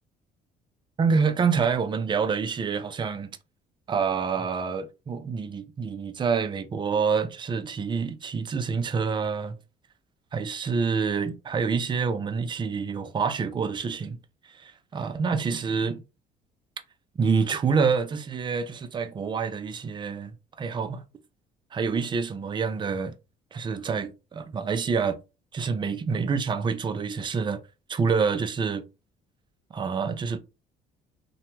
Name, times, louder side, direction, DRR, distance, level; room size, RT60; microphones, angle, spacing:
voice 1, 1.0-3.4 3.9-9.6 10.3-14.2 14.4-16.0 17.2-21.0 21.7-23.1 23.5-25.2 25.5-27.6 27.9-28.8 29.7-30.4, right 5 dB, 30° right, 0.4 m, -27 dB
2.9 x 2.2 x 2.9 m
cardioid pair, 110°, 17 cm